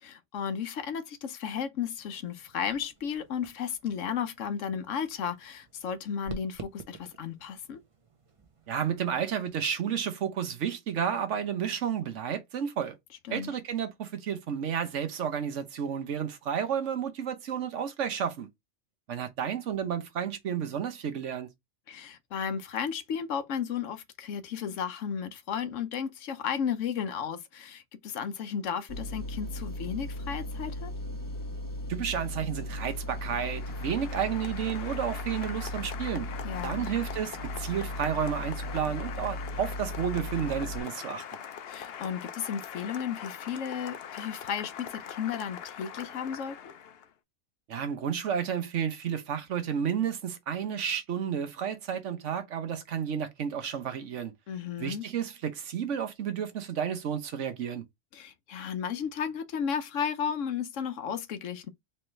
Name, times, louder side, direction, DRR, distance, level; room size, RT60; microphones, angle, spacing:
voice 1, 0.0-7.8 13.3-13.5 21.9-30.9 36.4-36.9 41.7-46.7 54.5-55.0 58.1-61.7, left 7 dB, 90° left, 1.1 m, -34 dB
sound 1, 2.0-9.7, right 3 dB, 30° right, 0.7 m, -51 dB
voice 2, 8.7-13.0 13.3-18.5 19.1-21.5 31.9-36.3 36.6-41.2 47.7-54.3 54.8-57.8, right 8 dB, 80° right, 1.2 m, -31 dB
sound 2, 28.9-40.8, left 1 dB, 20° left, 1.0 m, -37 dB
Applause, 32.6-47.1, left 8 dB, 60° left, 0.8 m, -42 dB
4.4 x 3.1 x 3.2 m
omnidirectional pair, 1.2 m